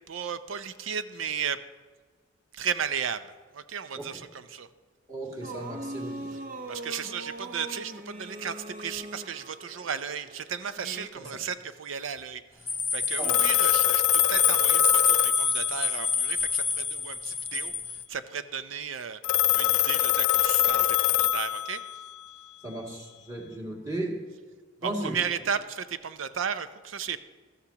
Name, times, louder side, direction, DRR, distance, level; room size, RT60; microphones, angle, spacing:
voice 1, 0.1-1.6 2.5-4.7 6.3-6.4 6.7-12.4 12.9-17.7 18.1-19.2 19.5-21.8 24.8-27.2, right 7 dB, 70° right, 12 dB, 0.6 m, -34 dB
voice 2, 5.1-6.1 11.1-11.3 13.2-13.5 22.6-24.1 24.8-25.1, right 1 dB, 15° right, -3 dB, 2.3 m, -35 dB
sound 1, 5.4-11.1, right 1 dB, 45° right, 0.8 m, -41 dB
sound 2, 12.7-18.0, left 5 dB, 10° left, 0.4 m, -27 dB
Telephone, 13.2-16.1 19.2-22.1, left 13 dB, 70° left, 0.4 m, -24 dB
14.0 x 13.0 x 2.9 m, 1.5 s
head